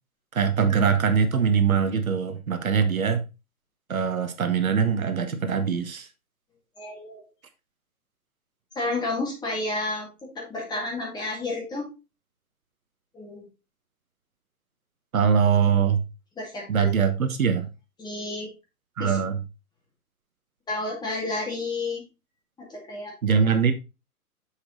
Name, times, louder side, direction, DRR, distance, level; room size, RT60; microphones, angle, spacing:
voice 1, 0.3-3.2 3.9-6.1 15.1-16.0 16.7-17.7 19.0-19.4 23.2-23.7, right 6 dB, 65° right, 8 dB, 1.3 m, -22 dB
voice 2, 6.8-7.2 8.8-10.1 10.3-11.9 13.1-13.5 16.4-16.9 18.0-18.5 19.0-19.2 20.7-22.0 22.7-23.1, left 2 dB, 10° left, -1 dB, 2.2 m, -31 dB
6.5 x 5.8 x 3.8 m, 0.27 s
figure-of-eight pair, 130°, 45 cm